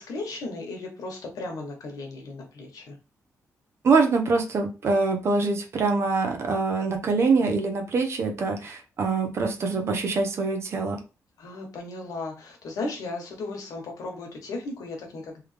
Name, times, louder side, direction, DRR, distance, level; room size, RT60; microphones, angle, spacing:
voice 1, 0.0-3.0 11.4-15.4, left 2 dB, 80° left, 2 dB, 1.4 m, -36 dB
voice 2, 3.8-11.0, right 4 dB, 50° right, 4 dB, 0.8 m, -24 dB
3.4 x 3.3 x 3.3 m, 0.31 s
wide cardioid pair, 170°, 6 cm